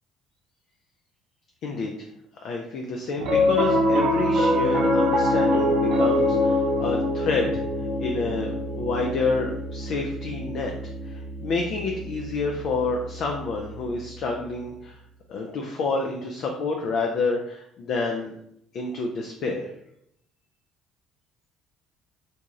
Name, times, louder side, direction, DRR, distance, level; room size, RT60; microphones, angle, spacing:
voice 1, 1.6-1.9 2.4-7.5 8.0-10.7 11.0-14.9 15.3-18.3 18.7-19.7, left 3 dB, 60° left, 1 dB, 0.3 m, -28 dB
Piano, 3.2-13.7, left 1 dB, 70° right, 0.6 m, -24 dB
2.7 x 2.2 x 2.9 m, 0.72 s
hypercardioid pair, 60°, 0 cm